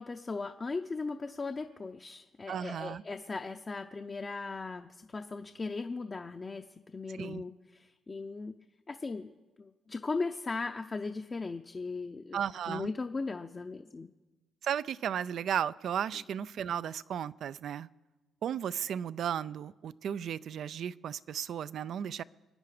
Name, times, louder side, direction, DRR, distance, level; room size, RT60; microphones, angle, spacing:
voice 1, 0.0-8.5 8.9-9.3 9.6-12.4 12.7-14.1 16.1-16.2, left 3 dB, 30° left, 0.6 m, -38 dB
voice 2, 2.5-3.0 7.1-7.4 12.3-12.9 14.6-17.9 18.4-22.2, right 9 dB, 65° right, 0.4 m, -35 dB
25.0 x 9.5 x 5.0 m
cardioid pair, 90°, 0 cm